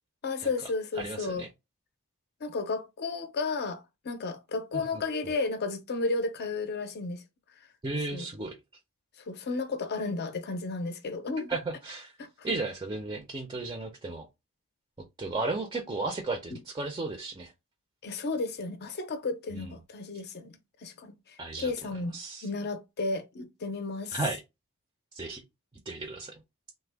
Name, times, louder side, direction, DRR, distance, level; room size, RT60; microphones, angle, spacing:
voice 1, 0.2-1.4 2.4-7.2 8.1-8.3 9.3-11.6 12.2-12.5 16.5-16.6 18.0-22.2 22.4-24.2, left 3 dB, 50° left, 0.6 m, -33 dB
voice 2, 1.0-1.5 4.7-5.0 7.8-8.5 11.5-12.1 12.4-14.3 15.2-17.5 19.5-19.7 21.4-21.7 22.1-22.5 24.1-24.4 25.1-25.4 25.9-26.4, right 3 dB, 20° right, 0.4 m, -34 dB
3.3 x 2.1 x 3.3 m
head